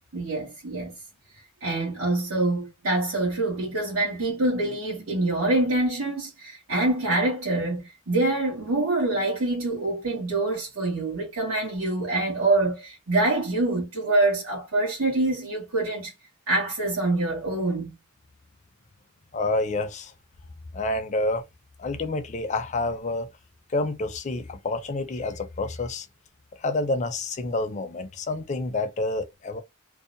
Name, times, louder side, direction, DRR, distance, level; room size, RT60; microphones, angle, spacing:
voice 1, 0.1-0.9 1.6-16.1 16.5-17.9, right 2 dB, 85° right, 1.2 m, -25 dB
voice 2, 19.3-20.1 20.7-21.4 21.8-23.3 23.7-26.1 26.6-29.6, left 2 dB, 35° left, 0.4 m, -28 dB
2.7 x 2.1 x 2.5 m
head